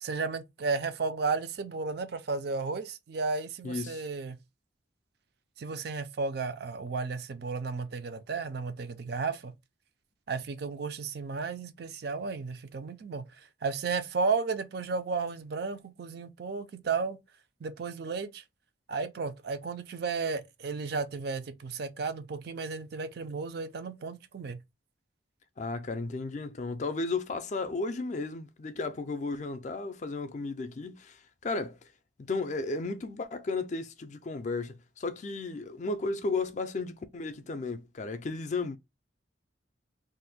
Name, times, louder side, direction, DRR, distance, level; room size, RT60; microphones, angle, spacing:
voice 1, 0.0-4.4 5.6-9.5 10.3-17.2 17.6-18.4 18.9-24.6, right 4 dB, 55° right, 0.4 m, -33 dB
voice 2, 3.6-4.0 25.6-31.9 32.2-38.8, left 3 dB, 40° left, 0.4 m, -34 dB
2.5 x 2.1 x 3.9 m
head